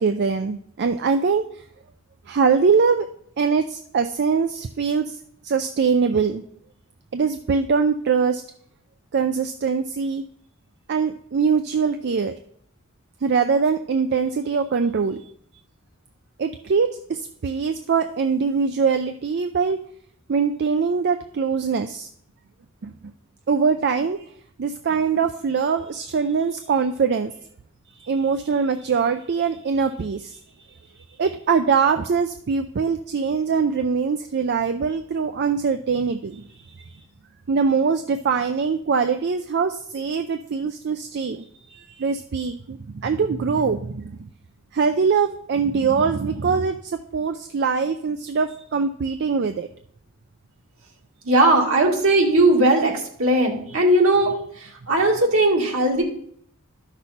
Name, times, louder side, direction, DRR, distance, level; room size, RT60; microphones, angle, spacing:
voice 1, 0.0-1.6 2.3-3.1 3.4-5.2 5.4-6.4 7.1-8.4 9.1-10.2 10.9-12.3 13.2-15.2 16.4-19.8 20.3-22.1 22.8-22.9 23.5-24.3 24.6-27.4 27.9-30.4 30.7-30.8 31.2-37.0 37.5-44.2 44.7-49.7, right 5 dB, 50° right, 7 dB, 0.4 m, -23 dB
voice 2, 51.2-56.0, right 2 dB, 70° right, 0 dB, 2.0 m, -18 dB
12.5 x 6.1 x 4.2 m, 0.66 s
head